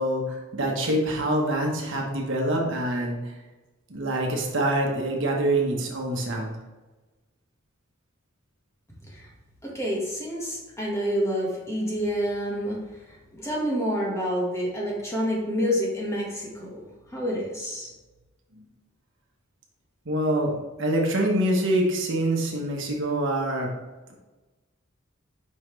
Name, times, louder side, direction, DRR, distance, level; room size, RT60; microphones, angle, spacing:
voice 1, 0.0-3.3 3.9-6.6 18.5-18.6 20.0-23.7, right 1 dB, 65° right, 0 dB, 1.2 m, -25 dB
voice 2, 9.6-12.8 13.1-16.8 17.1-17.9, equal, 15° left, -4 dB, 1.5 m, -28 dB
5.7 x 5.4 x 3.2 m, 1.2 s
head